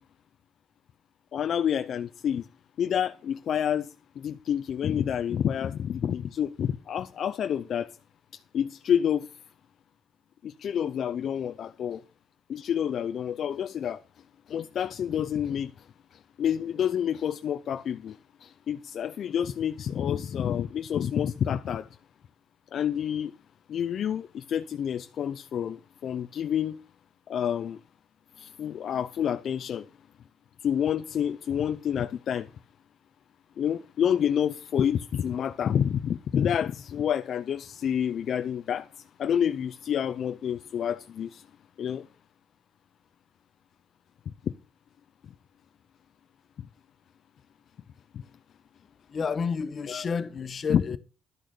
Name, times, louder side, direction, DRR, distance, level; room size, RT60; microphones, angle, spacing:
voice 1, 1.3-2.5 2.8-7.9 8.5-9.3 10.4-12.0 12.5-14.0 14.5-15.7 16.1-21.9 22.7-23.3 23.7-26.8 27.3-27.8 28.4-29.9 30.6-32.5 33.6-41.4 41.8-42.1 44.4-44.5 48.1-48.2 49.9-50.0 50.7-51.0, left 9 dB, 65° left, 0.5 m, -28 dB
voice 2, 49.1-51.0, left 5 dB, 45° left, 1.2 m, -30 dB
12.0 x 6.4 x 6.7 m
cardioid pair, 90°, 0 cm